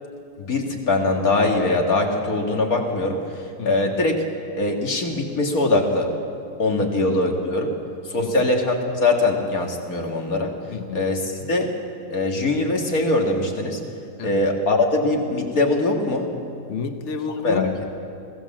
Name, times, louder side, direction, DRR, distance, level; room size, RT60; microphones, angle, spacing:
voice 1, 0.4-4.1 4.6-6.1 6.6-7.7 8.1-10.5 10.9-11.2 11.5-11.7 12.1-13.8 14.2-16.3 17.4-17.7, left 2 dB, 80° left, 2 dB, 2.7 m, -22 dB
voice 2, 3.6-4.0 6.8-7.1 8.2-8.5 10.7-11.1 14.2-14.4 16.7-18.0, left 6 dB, 55° left, 8 dB, 1.3 m, -31 dB
25.5 x 17.0 x 7.5 m, 2.5 s
omnidirectional pair, 1.5 m